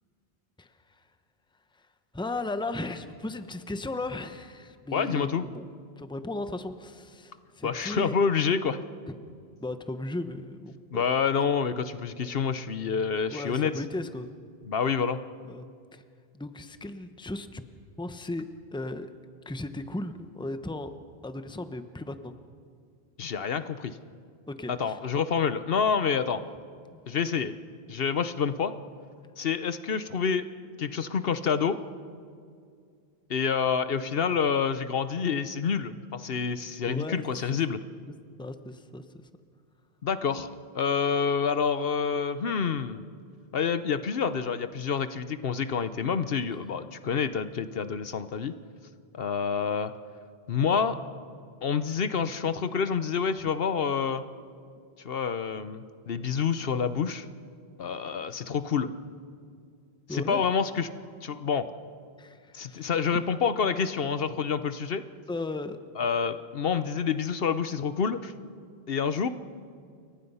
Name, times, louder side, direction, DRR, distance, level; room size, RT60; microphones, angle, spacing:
voice 1, 0.6-1.0 2.1-5.6 6.0-8.2 9.1-9.3 9.6-11.1 13.3-14.3 15.5-15.7 15.9-16.0 16.3-17.6 18.0-19.1 19.4-20.9 21.2-22.3 24.5-25.0 26.9-27.0 27.4-27.5 36.8-37.2 38.4-39.3 60.1-60.4 62.2-62.8 63.1-63.2 65.3-65.8, left 2 dB, 5° left, 9 dB, 0.9 m, -36 dB
voice 2, 4.9-5.4 7.6-8.8 10.9-13.7 14.7-15.2 23.2-24.0 24.7-26.4 27.1-27.5 27.9-28.7 29.4-30.5 30.8-31.8 33.3-37.8 40.0-43.0 43.5-48.5 49.1-49.9 50.5-51.0 51.6-54.2 55.0-57.3 57.8-58.9 60.1-60.9 61.2-61.7 62.5-65.0 66.0-68.3 68.9-69.3, left 6 dB, 65° left, 12 dB, 1.0 m, -28 dB
29.0 x 23.0 x 5.6 m, 2.2 s
omnidirectional pair, 1.1 m